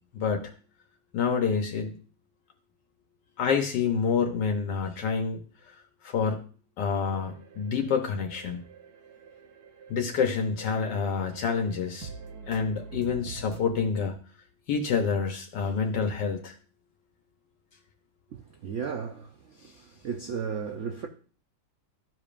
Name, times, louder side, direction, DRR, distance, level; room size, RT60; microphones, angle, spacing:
voice 1, 0.1-0.5 1.1-2.0 3.4-5.4 6.0-6.4 6.8-8.6 9.9-12.1 12.5-14.1 14.7-16.6, left 6 dB, 70° left, 1.4 m, -27 dB
sound 1, 7.0-13.9, right 5 dB, 60° right, 1.3 m, -46 dB
voice 2, 18.3-21.1, right 6 dB, 80° right, 0.6 m, -35 dB
13.0 x 5.1 x 2.5 m
omnidirectional pair, 2.0 m